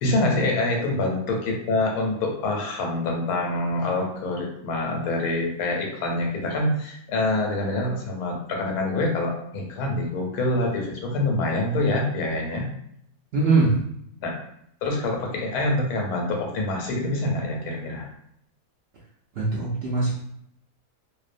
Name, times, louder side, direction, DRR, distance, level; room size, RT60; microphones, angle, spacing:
voice 1, 0.0-12.7 14.2-14.3 14.8-18.1, left 2 dB, 90° left, 0 dB, 1.1 m, -26 dB
voice 2, 13.3-13.8 19.4-20.1, right 3 dB, 70° right, -6 dB, 0.6 m, -21 dB
2.6 x 2.1 x 2.4 m, 0.71 s
omnidirectional pair, 1.6 m